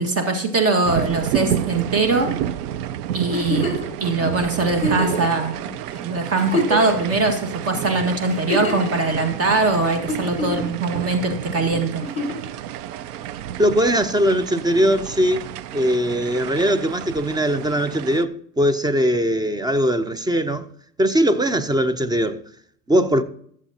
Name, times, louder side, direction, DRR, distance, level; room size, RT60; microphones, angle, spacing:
voice 1, 0.0-2.3 3.1-3.7 4.0-5.6 6.0-12.0, right 3 dB, 30° right, 1.8 m, -21 dB
sound 1, 0.9-18.2, right 11 dB, 75° right, 0.7 m, -30 dB
Giggle, 3.3-3.9 4.8-5.3 5.9-6.0 6.3-7.1 8.3-8.9 10.1-10.7 12.0-12.5 14.0-14.1, left 1 dB, 15° left, 4.5 m, -25 dB
voice 2, 13.6-15.4 15.7-20.7 21.0-22.4 22.9-23.2, equal, 10° right, 0.5 m, -20 dB
15.0 x 7.4 x 2.8 m
hypercardioid pair, 100°, 47 cm